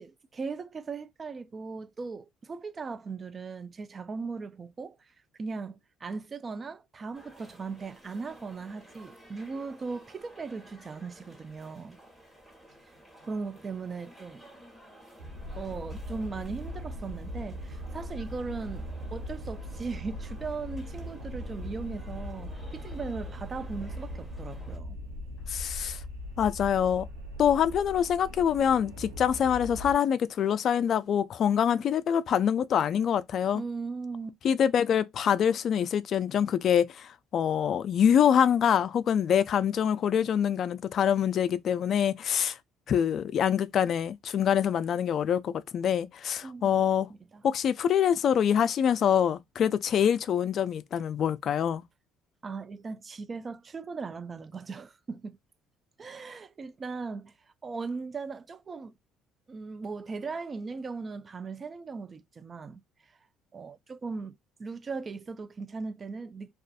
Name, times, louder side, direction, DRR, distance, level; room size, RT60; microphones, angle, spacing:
voice 1, 0.0-5.0 5.4-12.0 13.2-14.5 15.6-25.0 33.5-34.4 46.4-46.8 47.1-47.4 52.4-55.4 56.0-57.3 57.6-59.0 59.5-62.8 63.5-66.5, right 4 dB, 35° right, 0.3 m, -38 dB
sound 1, 7.1-24.8, right 1 dB, 10° right, 1.4 m, -54 dB
sound 2, 15.2-29.9, left 1 dB, 80° right, 0.7 m, -40 dB
voice 2, 25.5-26.0 26.4-27.1 27.4-33.6 34.4-42.6 42.9-47.1 47.4-51.8, left 8 dB, 55° left, 0.3 m, -25 dB
2.4 x 2.3 x 2.4 m
supercardioid pair, 75°, 0 cm